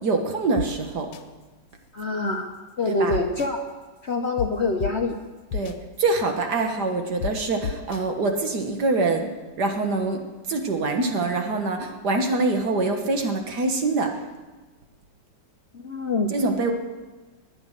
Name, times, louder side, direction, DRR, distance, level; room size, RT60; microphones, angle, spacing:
voice 1, 0.0-1.1 2.9-3.2 5.5-9.3 9.6-10.2 10.5-14.1 16.3-16.7, right 3 dB, 60° right, 4 dB, 2.0 m, -24 dB
sound 1, 0.6-0.7 1.1-1.2 3.1-3.5 4.4-4.5 4.8-4.9 5.5-5.7 7.2-7.3 7.6-8.0, left 7 dB, 90° left, 1.6 m, -29 dB
voice 2, 1.9-2.5 2.8-3.6 4.0-5.2 15.7-16.3, left 3 dB, 45° left, 3 dB, 1.0 m, -25 dB
20.5 x 8.8 x 6.6 m, 1.2 s
omnidirectional pair, 2.1 m